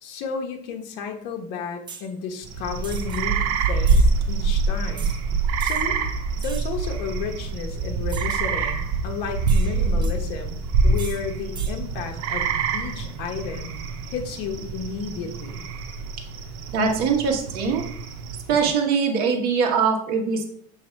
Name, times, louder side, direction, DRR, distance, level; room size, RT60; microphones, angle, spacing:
voice 1, 0.0-5.1 5.6-6.0 6.4-13.7 14.1-15.7, left 5 dB, 60° left, 4 dB, 1.1 m, -33 dB
sound 1, 1.9-2.1 2.8-3.2 3.8-4.1 5.0-5.2 5.6-5.9 6.4-6.8 8.1-8.5 9.5-10.1 11.0-11.2 11.5-11.8, right 5 dB, 25° right, 0.7 m, -40 dB
sound 2, 2.4-18.7, right 4 dB, 75° right, 1.0 m, -25 dB
voice 2, 16.7-17.8 18.5-20.4, right 5 dB, 50° right, 1 dB, 1.4 m, -22 dB
6.8 x 3.2 x 4.5 m, 0.62 s
supercardioid pair, 140°, 20 cm